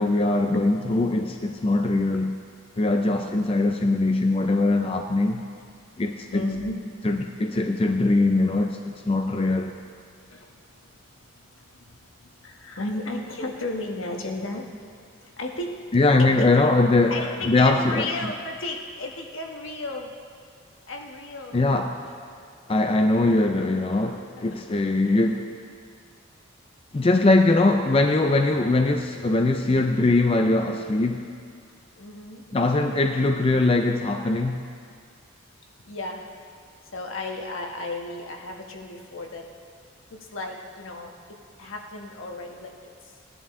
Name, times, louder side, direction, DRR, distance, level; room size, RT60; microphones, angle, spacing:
voice 1, 0.0-2.4 2.8-5.4 6.0-6.4 7.0-9.7 15.9-18.1 21.5-22.1 22.7-25.5 26.9-31.3 32.5-34.6, left 2 dB, 25° left, 4 dB, 0.4 m, -21 dB
voice 2, 6.3-6.8 10.3-10.9 11.5-14.7 15.2-15.8 16.2-16.5 17.1-20.1 20.9-21.6 32.0-32.4 35.8-36.3 36.9-39.5 40.1-42.7, left 2 dB, 75° left, 1 dB, 1.3 m, -34 dB
17.5 x 11.0 x 3.7 m, 2.1 s
head